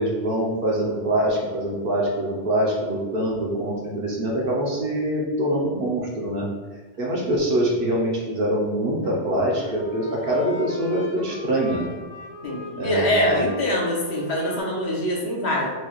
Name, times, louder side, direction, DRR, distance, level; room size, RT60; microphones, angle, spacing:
voice 1, 0.0-6.5 7.0-11.9 12.8-13.4, right 1 dB, 55° right, -3 dB, 0.9 m, -24 dB
sound 1, 9.0-14.6, left 1 dB, 40° left, 0.4 m, -40 dB
voice 2, 12.4-15.7, equal, 65° left, -3 dB, 1.1 m, -24 dB
4.5 x 2.3 x 2.9 m, 1.4 s
omnidirectional pair, 1.2 m